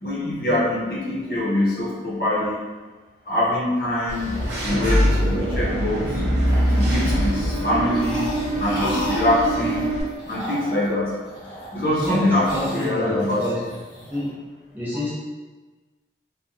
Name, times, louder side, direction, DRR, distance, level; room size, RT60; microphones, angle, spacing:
voice 1, 0.0-2.6 3.3-4.4 4.6-6.2 6.7-8.3 8.6-9.9 10.3-11.1 11.7-13.5, left 1 dB, 55° left, -6 dB, 0.7 m, -24 dB
sound 1, 4.1-6.0 6.4-14.2, equal, 25° left, 1.0 m, -36 dB
Engine / Mechanisms, 4.1-10.0, equal, 75° right, 0.7 m, -23 dB
voice 2, 11.8-13.6 14.1-14.3 14.7-15.1, left 1 dB, 10° right, -8 dB, 0.6 m, -29 dB
2.7 x 2.2 x 2.4 m, 1.3 s
head